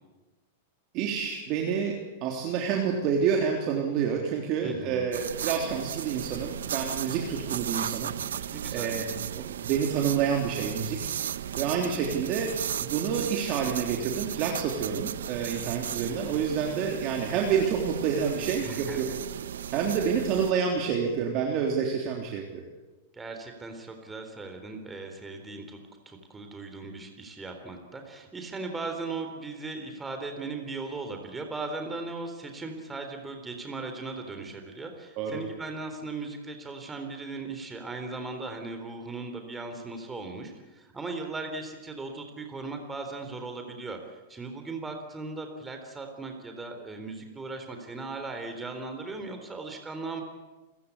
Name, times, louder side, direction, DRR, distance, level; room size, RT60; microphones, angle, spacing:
voice 1, 0.9-8.4 8.7-11.3 11.5-19.0 19.7-22.6 35.2-35.4, right 7 dB, 40° right, 1 dB, 3.5 m, -28 dB
voice 2, 4.6-5.1 8.5-8.9 18.6-19.2 23.1-25.8 26.1-50.2, right 3 dB, 10° right, 5 dB, 3.9 m, -38 dB
sound 1, 5.1-20.5, right 9 dB, 90° right, 0.9 m, -35 dB
29.5 x 16.0 x 8.5 m, 1.1 s
hypercardioid pair, 140°, 0 cm